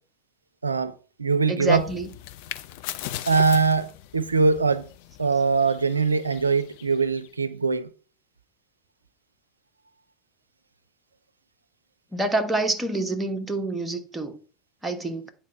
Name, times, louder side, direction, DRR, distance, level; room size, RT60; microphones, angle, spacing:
voice 1, 0.6-1.8 3.3-4.9 5.2-7.9, right 4 dB, 80° right, 0.4 m, -22 dB
voice 2, 1.5-2.1 12.1-14.3 14.8-15.3, right 2 dB, 10° right, 1.4 m, -27 dB
sound 1, 1.6-7.4, left 13 dB, 55° left, 0.6 m, -40 dB
9.1 x 4.1 x 5.6 m
figure-of-eight pair, 75°, 0 cm